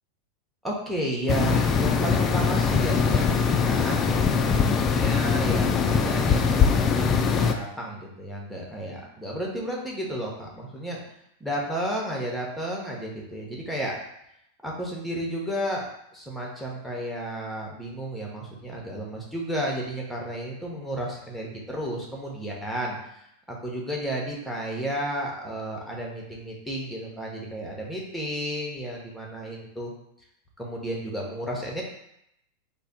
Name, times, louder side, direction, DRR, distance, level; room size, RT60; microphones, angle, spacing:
voice 1, 0.6-7.1 7.4-11.0 11.4-13.9 14.6-15.8 16.1-29.9 30.6-31.8, right 1 dB, ahead, -2 dB, 0.8 m, -32 dB
sound 1, 1.3-7.5, left 5 dB, 25° left, 0.3 m, -22 dB
3.2 x 2.1 x 4.0 m, 0.78 s
figure-of-eight pair, 90°, 0 cm